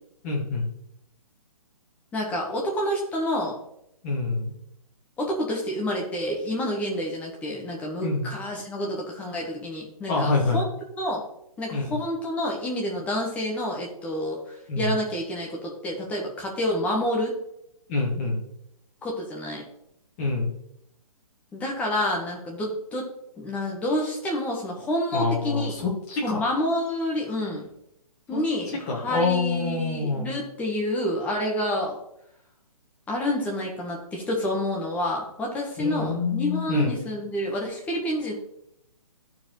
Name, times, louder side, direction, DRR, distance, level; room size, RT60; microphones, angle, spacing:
voice 1, 0.2-0.7 4.0-4.5 8.0-8.3 10.1-10.6 11.7-12.0 14.7-14.9 17.9-18.4 20.2-20.5 25.1-26.4 28.3-28.4 28.9-30.3 35.8-37.0, left 3 dB, 25° left, -3 dB, 2.1 m, -26 dB
voice 2, 2.1-3.5 5.2-10.6 10.9-11.2 11.6-17.4 19.0-19.7 21.5-23.1 23.4-25.7 26.2-27.7 28.3-32.0 33.1-38.3, left 1 dB, 5° left, -1 dB, 1.3 m, -28 dB
13.0 x 4.6 x 3.2 m, 0.77 s
hypercardioid pair, 165°, 19 cm